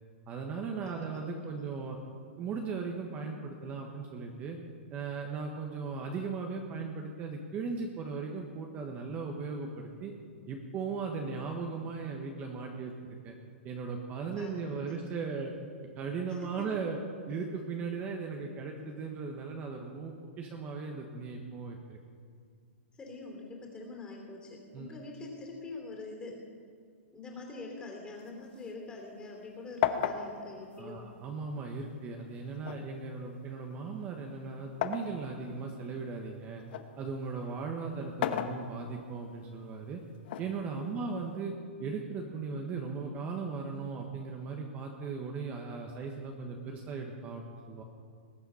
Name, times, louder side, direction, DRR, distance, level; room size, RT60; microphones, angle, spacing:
voice 1, 0.3-2.0 2.4-4.6 4.9-10.1 10.5-12.9 13.2-13.4 13.6-15.5 16.0-17.0 17.3-22.0 24.7-25.0 30.8-36.6 37.0-40.0 40.4-41.5 41.8-47.8, right 4 dB, 25° right, 2 dB, 1.1 m, -37 dB
voice 2, 0.8-1.5 14.4-15.0 16.3-16.7 23.0-26.4 27.1-31.0 40.8-41.0, left 3 dB, 15° left, 1 dB, 2.9 m, -45 dB
sound 1, 28.2-29.5 29.8-31.8 32.6-35.2 35.7-36.9 38.0-39.1 40.2-41.3, left 10 dB, 55° left, 0.9 m, -35 dB
20.0 x 8.0 x 5.6 m, 2.2 s
hypercardioid pair, 150°, 7 cm